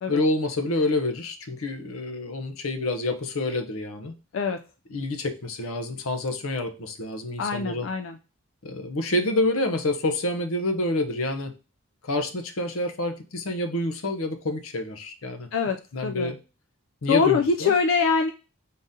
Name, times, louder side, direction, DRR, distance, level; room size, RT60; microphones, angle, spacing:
voice 1, 0.1-4.1 4.9-7.9 8.6-11.5 12.0-15.5 15.9-16.4 17.0-17.7, left 2 dB, 85° left, 7 dB, 0.7 m, -28 dB
voice 2, 7.4-8.2 15.5-15.8 16.0-16.3 17.1-18.3, left 5 dB, 65° left, 6 dB, 0.3 m, -23 dB
3.8 x 2.7 x 3.6 m, 0.32 s
head